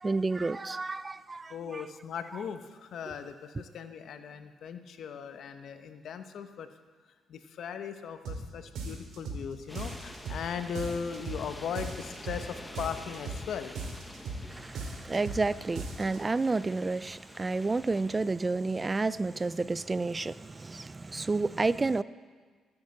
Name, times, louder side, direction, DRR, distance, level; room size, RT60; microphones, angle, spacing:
voice 1, 0.0-1.8 14.4-22.0, right 3 dB, 25° right, 17 dB, 0.3 m, -30 dB
voice 2, 1.5-6.7 7.0-13.7, left 7 dB, 70° left, 8 dB, 0.9 m, -38 dB
sound 1, 8.2-8.4 8.7-9.4 9.7-10.4 10.7-11.4 11.7-12.4 12.7-13.4 13.7-14.4 14.7-15.4 15.7-16.2, right 3 dB, 75° right, 2.3 m, -37 dB
sound 2, 9.7-18.2, left 1 dB, 10° left, 0.9 m, -48 dB
13.0 x 8.6 x 7.7 m, 1.5 s
cardioid pair, 90°, 0 cm